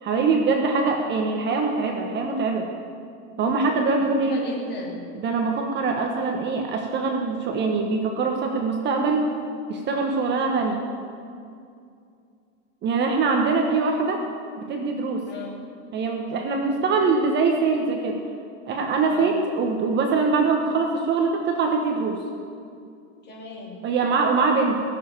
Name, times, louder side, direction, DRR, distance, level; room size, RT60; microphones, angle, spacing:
voice 1, 0.0-2.7 3.4-4.3 5.1-9.3 9.7-10.8 12.8-14.3 14.7-15.3 15.9-18.2 18.7-22.2 23.8-24.8, right 4 dB, 25° right, 2 dB, 1.2 m, -23 dB
voice 2, 4.2-5.0 10.3-10.6 15.3-15.5 19.1-19.4 23.2-23.8, left 3 dB, 25° left, -1 dB, 2.9 m, -34 dB
19.5 x 7.4 x 8.9 m, 2.4 s
supercardioid pair, 145°, 39 cm